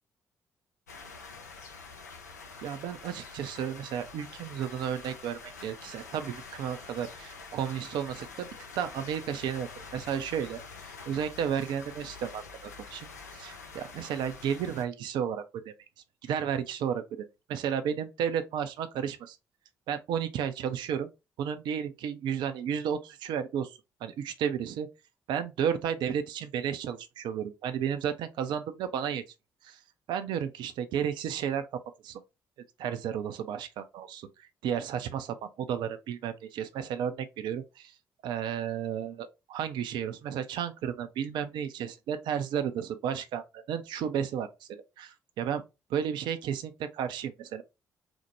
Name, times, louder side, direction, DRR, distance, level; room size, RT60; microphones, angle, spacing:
sound 1, 0.9-14.8, left 4 dB, 85° left, 0.4 m, -46 dB
voice 1, 2.6-8.5 8.8-15.7 16.2-17.0 17.5-19.4 19.9-21.1 21.4-24.9 25.3-29.2 29.6-29.8 30.1-31.7 32.0-32.2 32.8-37.9 38.2-45.6 45.9-47.6, right 8 dB, 60° right, 0.4 m, -33 dB
4.3 x 2.1 x 2.9 m
figure-of-eight pair, 40°, 9 cm